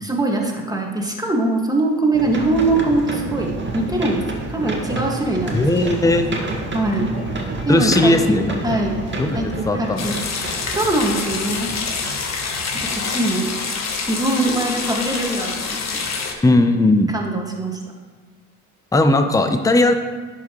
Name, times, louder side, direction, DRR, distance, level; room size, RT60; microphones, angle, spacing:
voice 1, 0.0-6.1 6.7-7.2 7.7-9.0 9.3-10.2 10.5-11.7 12.8-13.5 14.1-16.0 17.1-17.8, right 2 dB, 10° right, 0 dB, 1.8 m, -22 dB
sound 1, 2.1-12.5 13.0-13.1, right 2 dB, 30° right, 1.8 m, -29 dB
voice 2, 5.5-6.3 7.7-8.6 9.2-9.4 9.7-10.1 16.4-17.1 18.9-19.9, left 2 dB, 10° left, 7 dB, 0.7 m, -17 dB
Drum kit, 6.1-13.9, equal, 85° left, 1.7 m, -40 dB
sound 2, 10.0-16.3, left 5 dB, 45° left, 1.3 m, -26 dB
11.0 x 5.8 x 3.1 m, 1.5 s
hypercardioid pair, 55°, 38 cm